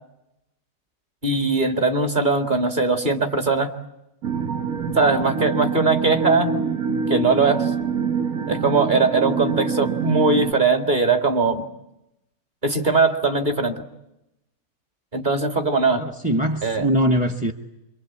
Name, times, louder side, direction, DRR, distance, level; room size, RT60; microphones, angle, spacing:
voice 1, 1.2-3.7 4.9-6.5 7.1-7.7 8.5-11.7 12.6-13.8 15.1-16.0 16.6-16.9, right 3 dB, 30° right, 6 dB, 2.3 m, -20 dB
sound 1, 4.2-10.5, right 6 dB, 60° right, 1.5 m, -25 dB
voice 2, 15.9-17.5, equal, 5° right, 6 dB, 1.0 m, -22 dB
26.5 x 24.0 x 8.6 m, 0.89 s
omnidirectional pair, 1.7 m